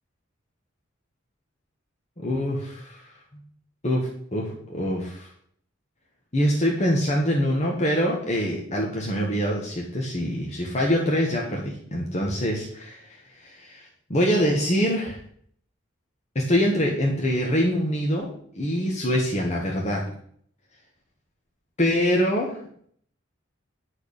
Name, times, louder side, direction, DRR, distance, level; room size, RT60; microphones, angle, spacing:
voice 1, 2.2-3.1 3.8-5.3 6.3-13.0 13.4-15.2 16.3-18.3 18.5-20.0 21.8-22.6, equal, 35° left, -2 dB, 1.4 m, -24 dB
10.5 x 4.8 x 6.5 m, 0.63 s
head